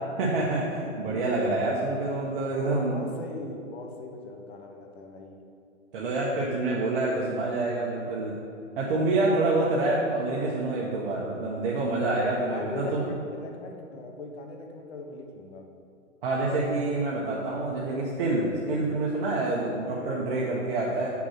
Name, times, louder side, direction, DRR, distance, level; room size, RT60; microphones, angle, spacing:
voice 1, 0.2-3.1 5.9-8.4 8.8-13.0 16.2-21.1, right 2 dB, 45° right, -4 dB, 1.1 m, -27 dB
voice 2, 2.6-5.4 8.9-9.2 12.5-15.6 20.5-21.0, left 3 dB, 55° left, 3 dB, 1.2 m, -41 dB
6.1 x 6.0 x 5.8 m, 2.4 s
hypercardioid pair, 155°, 38 cm